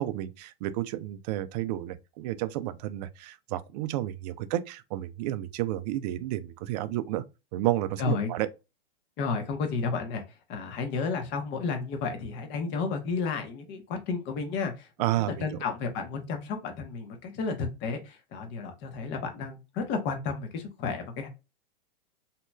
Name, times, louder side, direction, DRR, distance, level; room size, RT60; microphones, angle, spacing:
voice 1, 0.0-7.2 7.5-8.5 15.0-15.5, right 14 dB, 45° right, 0.4 m, -31 dB
voice 2, 8.0-8.3 9.2-10.2 10.5-21.3, left 4 dB, 35° left, 0.9 m, -32 dB
3.0 x 2.7 x 2.3 m
hypercardioid pair, 105°, 31 cm